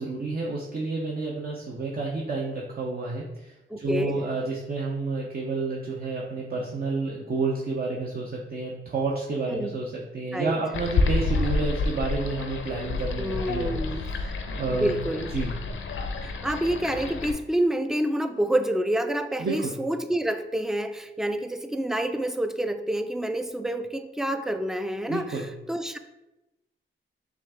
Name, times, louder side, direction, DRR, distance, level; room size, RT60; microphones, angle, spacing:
voice 1, 0.0-14.9 15.3-15.5 19.4-19.7 25.1-25.5, right 3 dB, 45° right, -3 dB, 0.7 m, -30 dB
voice 2, 3.7-4.2 9.5-9.7 10.3-10.5 13.2-15.3 16.2-26.0, right 1 dB, ahead, 8 dB, 0.3 m, -28 dB
sound 1, 10.7-17.3, left 3 dB, 75° left, 0.5 m, -29 dB
6.0 x 2.4 x 3.5 m, 0.99 s
cardioid pair, 80°, 21 cm